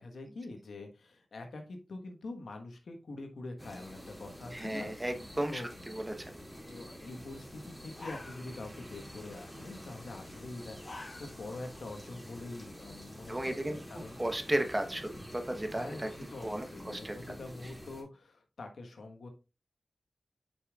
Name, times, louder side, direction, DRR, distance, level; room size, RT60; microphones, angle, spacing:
voice 1, 0.0-5.0 5.5-5.7 6.6-14.2 15.7-19.3, left 2 dB, 90° left, 4 dB, 1.3 m, -45 dB
sound 1, 3.6-18.0, equal, ahead, 2.5 m, -48 dB
voice 2, 4.5-6.3 13.3-13.8 14.2-16.1 16.4-17.3, right 1 dB, 20° right, 6 dB, 1.1 m, -34 dB
sound 2, 7.9-8.9 9.1-9.5 10.5-11.6 12.0-12.1 12.6-13.6, left 2 dB, 55° left, 1.3 m, -48 dB
8.5 x 5.3 x 2.4 m, 0.30 s
wide cardioid pair, 70°, 0 cm